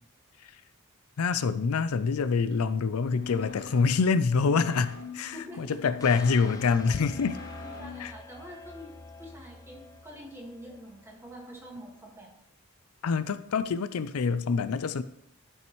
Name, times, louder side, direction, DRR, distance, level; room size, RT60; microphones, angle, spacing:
voice 1, 1.2-7.4 8.0-8.1 13.0-15.0, left 5 dB, 85° left, 0.5 m, -26 dB
sound 1, 2.9-8.2, left 5 dB, 60° left, 1.9 m, -44 dB
voice 2, 5.3-5.8 7.6-8.9 9.2-12.3, equal, 10° right, 1.7 m, -45 dB
sound 2, 6.0-12.1, left 2 dB, 15° left, 0.5 m, -48 dB
12.5 x 5.5 x 3.1 m
head